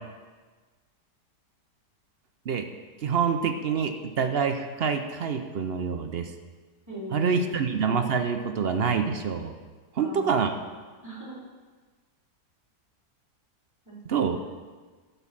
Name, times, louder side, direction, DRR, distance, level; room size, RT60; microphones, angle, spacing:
voice 1, 3.0-6.3 7.1-9.5 9.9-10.5 14.1-14.4, right 6 dB, 60° right, 6 dB, 0.6 m, -26 dB
voice 2, 6.9-7.6 10.0-10.6 11.0-11.4 13.8-14.4, right 1 dB, 10° right, -8 dB, 3.4 m, -40 dB
12.5 x 5.6 x 7.3 m, 1.4 s
omnidirectional pair, 1.8 m